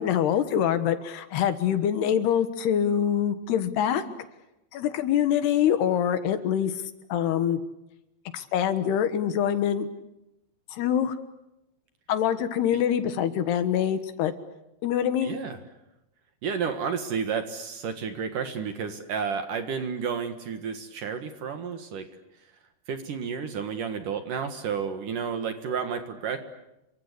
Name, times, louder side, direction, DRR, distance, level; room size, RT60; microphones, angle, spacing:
voice 1, 0.0-4.0 4.7-6.7 7.1-7.6 8.3-9.9 10.7-11.1 12.1-14.3 14.8-15.4, left 9 dB, 70° left, 11 dB, 3.3 m, -25 dB
voice 2, 15.2-15.6 16.4-22.1 22.9-26.4, right 6 dB, 60° right, 8 dB, 2.7 m, -31 dB
29.5 x 24.0 x 8.3 m, 0.90 s
omnidirectional pair, 5.1 m